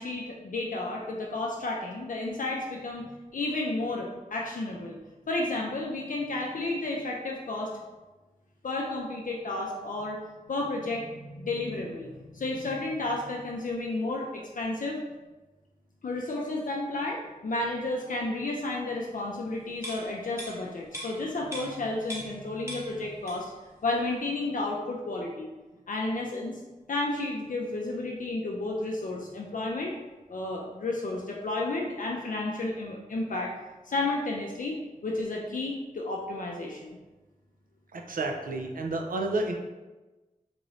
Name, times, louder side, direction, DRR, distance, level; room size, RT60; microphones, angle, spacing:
voice 1, 0.0-5.0 5.3-7.7 8.6-10.2 10.5-15.0 16.0-23.5 23.8-25.5 25.9-26.6 26.9-29.9 30.3-33.5 33.8-37.0, left 2 dB, 65° left, -1 dB, 0.4 m, -32 dB
sound 1, 19.8-22.4 22.7-23.6 24.0-24.1, equal, 20° right, 0.9 m, -41 dB
voice 2, 37.9-39.5, right 2 dB, 75° right, 3 dB, 0.5 m, -30 dB
3.7 x 2.5 x 3.1 m, 1.2 s
wide cardioid pair, 60°, 14 cm